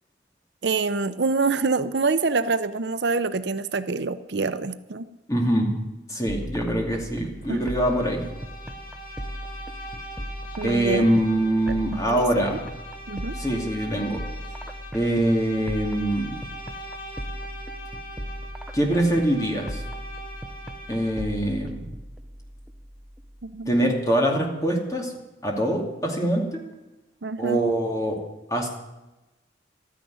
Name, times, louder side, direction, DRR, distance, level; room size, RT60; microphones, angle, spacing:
voice 1, 0.6-5.1 7.5-7.7 10.6-11.1 11.7-11.8 12.1-12.2 12.5-12.6 13.1-13.4 23.4-23.7 27.2-27.6, right 4 dB, 65° right, 12 dB, 0.6 m, -26 dB
voice 2, 5.3-5.7 6.1-8.3 10.6-12.6 13.3-14.2 14.9-16.4 18.7-19.8 20.9-21.9 23.7-25.1 25.4-26.6 27.4-28.2 28.5-28.7, right 1 dB, 15° left, 0 dB, 2.5 m, -24 dB
sound 1, 6.3-23.9, equal, 5° right, 0.6 m, -38 dB
Bowed string instrument, 7.4-21.3, equal, 50° left, 2.6 m, -41 dB
13.0 x 10.0 x 9.4 m, 1.0 s
head